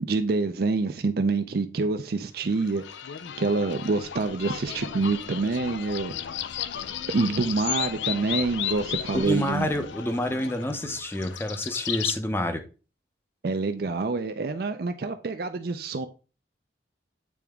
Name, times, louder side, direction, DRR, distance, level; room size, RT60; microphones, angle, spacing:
voice 1, 0.0-2.8 3.4-6.1 7.1-9.7 13.4-16.1, right 3 dB, 55° right, 0.4 m, -26 dB
sound 1, 2.5-12.2, left 9 dB, 80° left, 0.5 m, -34 dB
voice 2, 9.1-12.6, left 1 dB, 10° left, 0.6 m, -28 dB
8.5 x 3.4 x 3.5 m
head